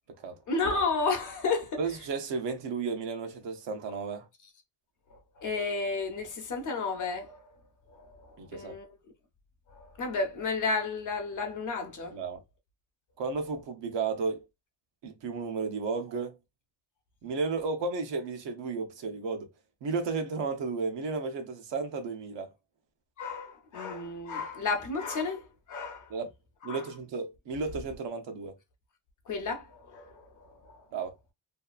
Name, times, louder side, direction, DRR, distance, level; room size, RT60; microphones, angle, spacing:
voice 1, 0.5-1.8 5.4-7.4 8.2-8.9 9.7-12.2 23.2-25.4 25.7-26.1 26.7-26.8 29.3-30.8, left 4 dB, 45° left, 0.7 m, -32 dB
voice 2, 1.8-4.2 8.4-8.7 12.1-12.4 13.2-14.4 15.0-16.4 17.2-19.5 19.8-22.5 26.1-26.3 26.6-28.6 30.9-31.1, right 4 dB, 80° right, 0.8 m, -33 dB
2.7 x 2.3 x 2.4 m
wide cardioid pair, 170°, 43 cm